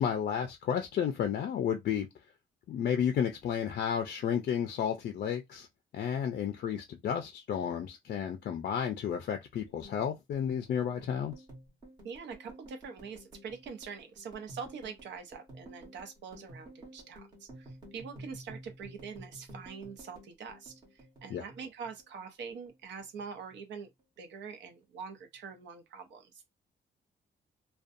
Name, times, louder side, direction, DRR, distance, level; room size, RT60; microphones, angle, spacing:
voice 1, 0.0-2.1 2.7-5.7 5.9-11.3 21.3-21.4, left 8 dB, 55° left, 0.4 m, -32 dB
sound 1, 9.7-22.2 22.5-23.5 23.8-24.2 24.5-25.2, right 1 dB, 25° right, 1.2 m, -51 dB
voice 2, 12.0-23.9 24.2-26.3, right 6 dB, 80° right, 0.7 m, -44 dB
2.4 x 2.2 x 2.5 m
wide cardioid pair, 175°, 18 cm